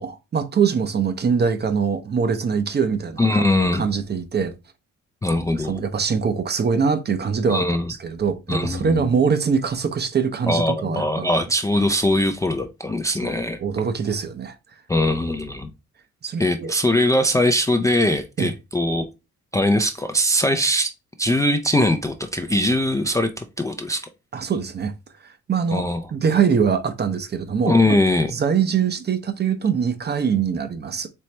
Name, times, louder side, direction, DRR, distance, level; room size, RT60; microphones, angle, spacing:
voice 1, 0.0-4.5 5.6-7.6 8.0-11.3 13.2-13.3 13.6-14.6 16.2-16.7 18.4-18.5 24.3-24.9 25.2-25.8 26.1-28.0 28.3-31.1, right 6 dB, 35° right, 0.6 m, -23 dB
voice 2, 3.2-3.9 5.2-5.8 7.5-7.9 8.5-9.1 10.5-13.6 14.9-15.7 16.4-19.1 19.5-20.9 21.2-24.1 25.7-26.0 27.7-28.3, left 1 dB, 10° left, 0.4 m, -21 dB
4.3 x 3.0 x 3.2 m
cardioid pair, 90°, 30 cm